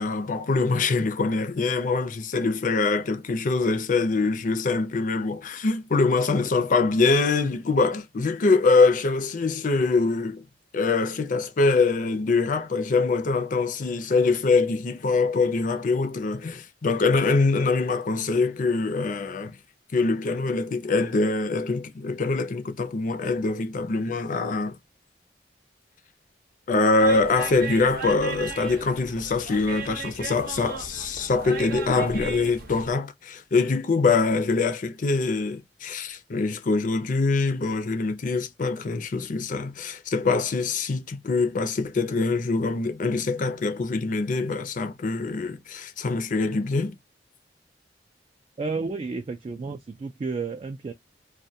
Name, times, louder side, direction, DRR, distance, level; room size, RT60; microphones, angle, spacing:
voice 1, 0.0-10.4 10.7-19.6 19.9-24.8 26.7-47.0, left 3 dB, 50° left, 0.5 m, -24 dB
sound 1, 27.0-32.9, right 4 dB, 60° right, 0.7 m, -37 dB
voice 2, 48.6-50.9, right 4 dB, 35° right, 0.3 m, -31 dB
2.2 x 2.2 x 2.6 m
head